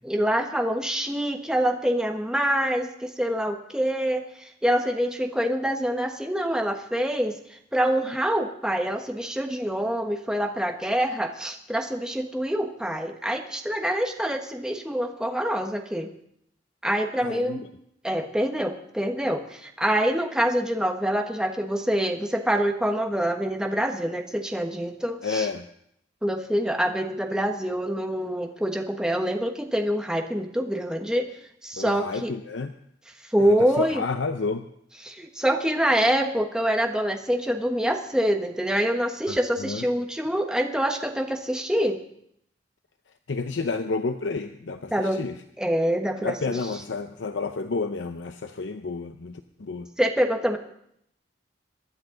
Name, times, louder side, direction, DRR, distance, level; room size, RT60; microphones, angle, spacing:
voice 1, 0.0-7.3 7.7-16.1 16.8-17.6 18.0-25.5 26.2-31.3 31.6-32.3 33.3-34.0 35.0-42.0 44.9-45.2 45.6-46.6 50.0-50.6, equal, 5° right, 3 dB, 1.3 m, -25 dB
voice 2, 17.2-17.7 25.2-25.7 31.8-32.7 33.4-34.7 39.3-39.8 43.3-45.4 46.2-49.9, left 4 dB, 80° left, 7 dB, 0.7 m, -30 dB
24.0 x 10.5 x 3.9 m, 0.72 s
head